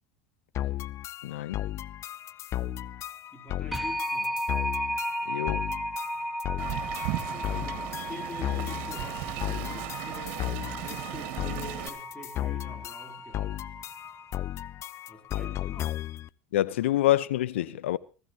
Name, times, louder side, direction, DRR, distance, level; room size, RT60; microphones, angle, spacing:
sound 1, 0.5-16.3, left 14 dB, 45° left, 0.6 m, -35 dB
voice 1, 1.2-1.6 5.3-5.7 16.5-18.0, left 14 dB, 80° left, 0.9 m, -26 dB
voice 2, 3.3-4.5 7.2-10.4 10.8-13.6 15.1-16.1, left 1 dB, 15° left, 3.6 m, -45 dB
sound 2, 3.7-14.3, equal, ahead, 1.1 m, -35 dB
Wind, 6.6-11.9, right 15 dB, 65° right, 2.1 m, -36 dB
24.5 x 14.5 x 3.0 m
hypercardioid pair, 80°, 7 cm